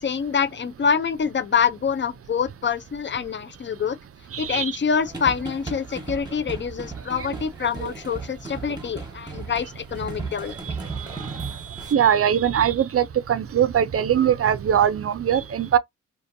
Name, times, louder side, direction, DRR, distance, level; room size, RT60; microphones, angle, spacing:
voice 1, 0.0-4.0 4.4-10.8 11.1-11.2, left 6 dB, 30° left, 0.5 m, -26 dB
voice 2, 4.3-4.7 7.8-7.9 10.6-11.5 11.9-15.8, right 9 dB, 40° right, 0.5 m, -22 dB
sound 1, 5.0-11.9, right 4 dB, 10° right, 1.2 m, -36 dB
2.6 x 2.5 x 2.5 m
supercardioid pair, 45°, 38 cm